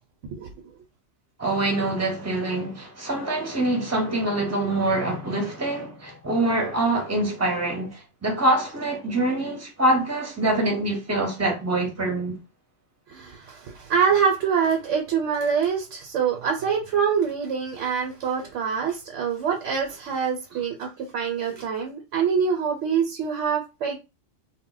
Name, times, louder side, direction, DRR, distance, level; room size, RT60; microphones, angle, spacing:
voice 1, 1.4-12.4, right 2 dB, 15° right, 0.6 m, -25 dB
voice 2, 13.1-24.0, right 6 dB, 80° right, 0.9 m, -25 dB
2.1 x 2.0 x 3.8 m
omnidirectional pair, 1.2 m